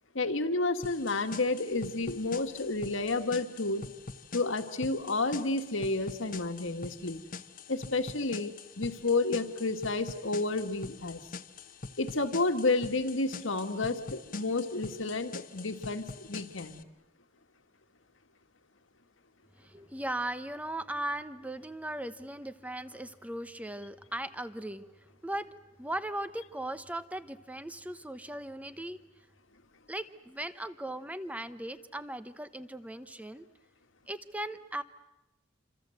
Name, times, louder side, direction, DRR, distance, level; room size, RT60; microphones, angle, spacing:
voice 1, 0.1-3.9 4.3-7.2 7.7-11.2 12.0-16.8, left 3 dB, 85° left, 7 dB, 2.0 m, -31 dB
sound 1, 0.8-16.8, left 4 dB, 45° left, 1.1 m, -45 dB
voice 2, 19.6-25.5 25.8-29.0 29.9-33.4 34.1-34.8, right 1 dB, 10° right, 12 dB, 1.0 m, -38 dB
28.0 x 26.0 x 8.0 m, 0.94 s
head